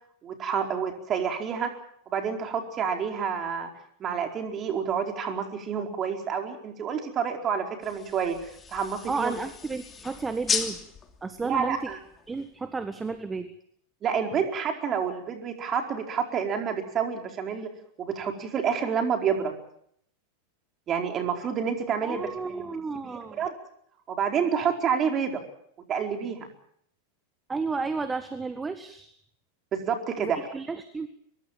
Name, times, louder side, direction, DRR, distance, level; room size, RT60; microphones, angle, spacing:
voice 1, 0.2-1.7 2.1-3.7 4.0-8.4 8.7-9.3 11.4-12.0 14.0-17.7 18.0-19.6 20.9-22.6 23.0-23.5 24.1-25.4 25.9-26.5 29.7-30.5, right 7 dB, 30° right, 3 dB, 4.6 m, -28 dB
sound 1, 7.8-12.7, left 6 dB, 20° left, 3.0 m, -36 dB
voice 2, 9.1-10.8 11.2-11.8 12.3-13.5 22.0-23.4 27.5-29.1 30.2-31.1, right 4 dB, 15° right, 10 dB, 1.6 m, -32 dB
24.5 x 22.0 x 7.4 m, 0.70 s
figure-of-eight pair, 90°, 0 cm